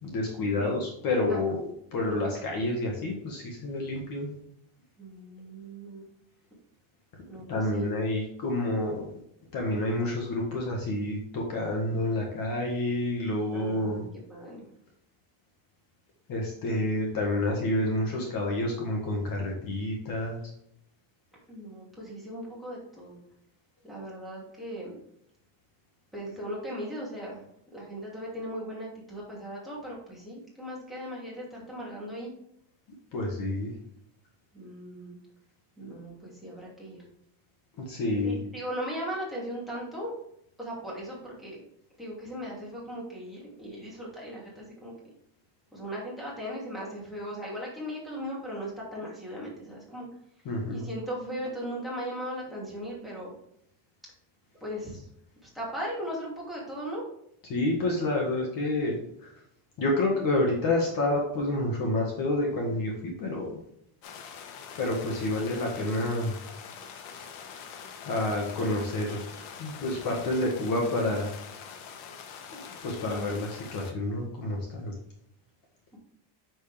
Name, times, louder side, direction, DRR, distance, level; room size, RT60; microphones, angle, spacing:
voice 1, 0.0-4.4 7.5-9.2 9.5-14.0 16.3-20.4 33.1-33.7 37.8-38.4 50.4-50.9 57.5-59.3 59.8-62.9 63.2-63.5 64.7-66.4 68.0-71.3 72.5-74.9, left 1 dB, 40° left, 0 dB, 1.8 m, -29 dB
voice 2, 1.3-1.6 5.0-6.2 7.3-7.9 13.5-14.7 21.5-23.2 23.8-24.9 26.1-27.4 27.7-32.3 34.5-35.2 35.8-37.0 38.2-40.1 40.6-41.6 42.0-44.9 45.7-50.1 50.7-53.3 54.6-55.1 55.4-57.0 75.9-76.0, equal, ahead, -5 dB, 2.6 m, -38 dB
sound 1, 64.0-73.9, left 7 dB, 75° left, 1.2 m, -44 dB
6.7 x 6.5 x 3.5 m, 0.72 s
cardioid pair, 155°, 50 cm